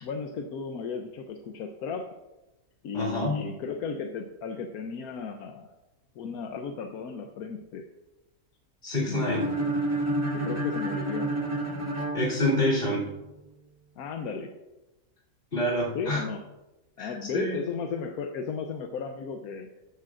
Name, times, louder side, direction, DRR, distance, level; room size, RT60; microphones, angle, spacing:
voice 1, 0.0-2.1 2.8-5.7 6.2-7.9 9.1-9.8 10.3-11.3 14.0-14.5 15.9-16.5 17.0-19.7, left 5 dB, 85° left, 5 dB, 1.3 m, -35 dB
voice 2, 2.9-3.4 8.8-9.4 12.1-13.0 15.5-16.2 17.0-17.6, left 1 dB, 40° left, -6 dB, 3.5 m, -27 dB
sound 1, 9.2-13.1, right 1 dB, 20° right, 1.4 m, -30 dB
15.0 x 12.5 x 2.5 m, 1.0 s
omnidirectional pair, 1.5 m